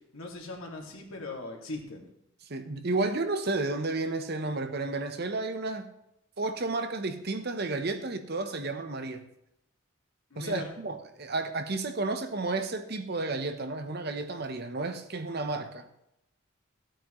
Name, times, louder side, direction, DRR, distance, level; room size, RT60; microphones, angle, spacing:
voice 1, 0.1-2.1 10.3-10.7, left 2 dB, 80° left, 2.3 m, -39 dB
voice 2, 2.5-5.9 6.4-9.2 10.4-15.9, right 3 dB, 50° right, 0.9 m, -32 dB
14.5 x 8.9 x 3.1 m
head